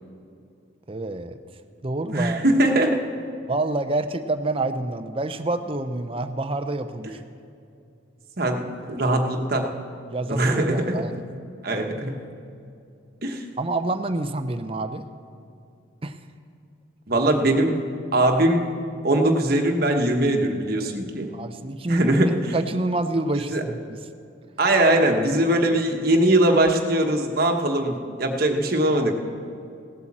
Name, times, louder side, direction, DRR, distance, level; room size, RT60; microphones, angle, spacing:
voice 1, 0.9-1.4 1.8-2.4 3.5-7.2 10.1-11.1 13.6-15.1 16.0-16.2 21.3-22.2 22.5-24.0, right 2 dB, 30° right, 9 dB, 0.6 m, -27 dB
voice 2, 2.1-3.0 8.4-8.6 8.9-9.7 10.3-10.9 11.6-12.2 13.2-13.4 17.1-17.7 18.1-18.6 19.0-21.3 21.9-22.5 23.3-23.6 24.6-29.1, right 1 dB, 50° right, 3 dB, 1.2 m, -21 dB
17.0 x 8.2 x 7.4 m, 2.5 s
head